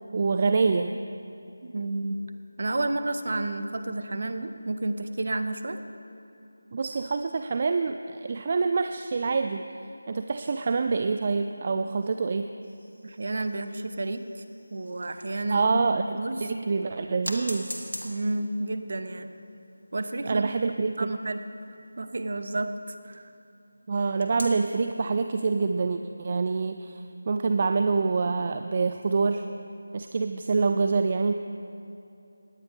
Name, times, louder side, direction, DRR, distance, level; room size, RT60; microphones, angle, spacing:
voice 1, 0.1-0.9 6.7-9.6 10.1-12.5 15.5-17.9 20.2-21.2 23.9-29.5 29.9-31.3, right 4 dB, 30° right, 7 dB, 0.3 m, -26 dB
voice 2, 1.6-2.2 2.6-5.8 13.0-14.2 14.7-15.7 16.1-16.5 18.0-19.3 19.9-20.5 20.9-21.4 22.0-23.2, right 2 dB, 45° right, 8 dB, 0.7 m, -31 dB
sound 1, 12.6-15.5 16.1-16.2 17.2-23.3 24.2-24.8, left 1 dB, 65° left, 1.5 m, -43 dB
17.0 x 10.5 x 3.6 m, 2.8 s
figure-of-eight pair, 165°, 0 cm